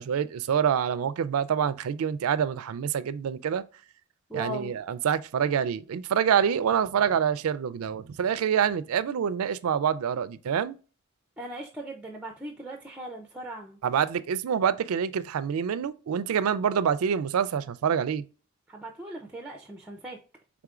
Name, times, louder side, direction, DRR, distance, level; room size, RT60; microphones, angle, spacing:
voice 1, 0.0-3.6 4.3-10.8 13.8-18.2, right 8 dB, 90° right, 0.4 m, -26 dB
voice 2, 4.3-4.7 11.4-13.8 18.7-20.2, right 1 dB, 5° right, 0.4 m, -38 dB
4.8 x 3.6 x 2.3 m
head